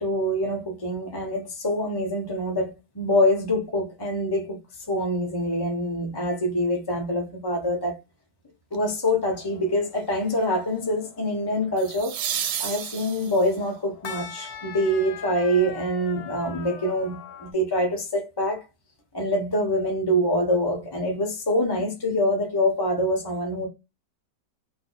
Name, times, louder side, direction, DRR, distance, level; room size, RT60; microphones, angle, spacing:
voice 1, 0.0-4.6 4.9-8.0 8.7-12.1 12.6-18.6 19.1-23.7, equal, 30° left, 0.4 m, -25 dB
sound 1, 8.7-9.1 11.8-13.6 16.5-16.6, right 9 dB, 75° right, 1.1 m, -31 dB
sound 2, 9.3-17.5, left 7 dB, 70° left, 1.0 m, -43 dB
2.6 x 2.5 x 3.8 m
omnidirectional pair, 1.9 m